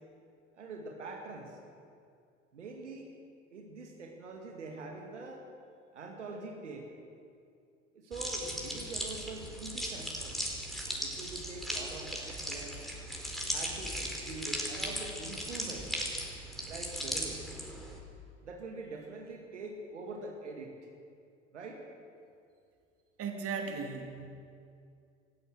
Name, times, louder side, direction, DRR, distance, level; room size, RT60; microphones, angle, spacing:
voice 1, 0.5-1.5 2.5-3.1 3.5-5.4 5.9-6.9 7.9-10.4 11.0-12.8 13.5-15.9 16.7-17.5 18.4-20.7 21.5-21.8, right 3 dB, 80° right, 1 dB, 2.3 m, -44 dB
sound 1, 8.1-18.0, equal, ahead, 4.4 m, -38 dB
voice 2, 23.2-24.3, right 5 dB, 40° right, 3 dB, 2.8 m, -37 dB
27.0 x 15.5 x 6.4 m, 2.4 s
figure-of-eight pair, 65°, 35 cm